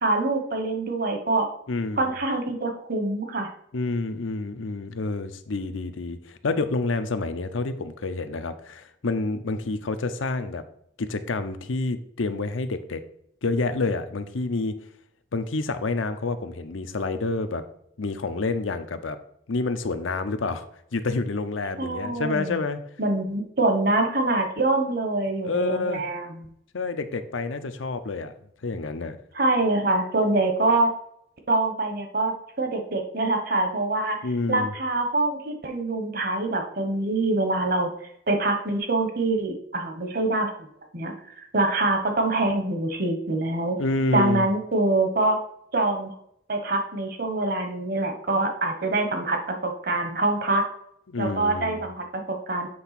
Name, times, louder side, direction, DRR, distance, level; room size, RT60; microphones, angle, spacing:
voice 1, 0.0-1.5 2.0-3.5 21.8-22.6 23.0-26.4 29.3-30.9 31.5-34.2 34.5-37.9 38.3-40.5 40.9-41.1 41.5-43.8 44.1-45.4 45.7-46.1 46.5-50.6 51.2-52.7, right 2 dB, 50° right, 5 dB, 1.2 m, -25 dB
voice 2, 1.7-2.1 3.7-10.6 11.0-13.0 13.4-14.7 15.3-17.6 18.0-19.2 19.5-20.7 20.9-22.8 25.4-26.0 26.7-28.3 28.6-29.2 34.2-34.7 43.8-44.5 51.1-51.8, left 3 dB, 85° left, 9 dB, 0.7 m, -28 dB
7.7 x 3.5 x 5.9 m, 0.71 s
head